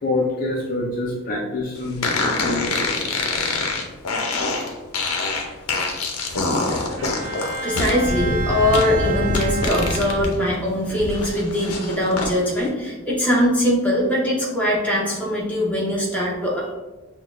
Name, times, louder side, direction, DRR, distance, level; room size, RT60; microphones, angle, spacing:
voice 1, 0.0-2.9 3.2-3.7, left 2 dB, 40° left, -2 dB, 0.4 m, -27 dB
sound 1, 2.0-10.3 10.7-12.3, left 3 dB, 85° left, 0.6 m, -25 dB
Bowed string instrument, 7.0-10.6, right 4 dB, 75° right, 0.7 m, -31 dB
voice 2, 7.6-16.7, left 1 dB, 5° left, -5 dB, 0.7 m, -21 dB
5.8 x 2.2 x 2.4 m, 1.2 s
head